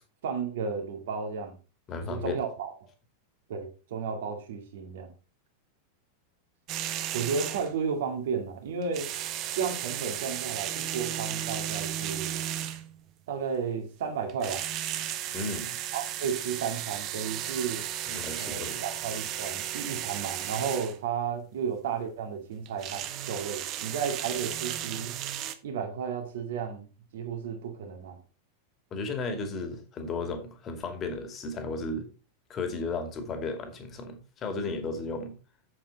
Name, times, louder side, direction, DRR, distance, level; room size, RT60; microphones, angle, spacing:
voice 1, 0.2-1.6 2.0-2.7 3.5-5.1 7.1-9.1 9.6-12.4 13.3-14.6 15.9-17.8 18.4-25.1 25.6-26.9 27.1-28.2, right 6 dB, 55° right, 2.1 m, -33 dB
voice 2, 1.9-2.4 15.3-15.8 18.1-18.8 28.9-32.1 32.5-35.3, left 3 dB, 30° left, 2.3 m, -34 dB
sound 1, 6.7-7.8 8.8-13.0 14.3-21.0 22.7-25.6, right 11 dB, 35° right, 1.0 m, -34 dB
8.4 x 7.7 x 4.0 m
figure-of-eight pair, 90°, 0 cm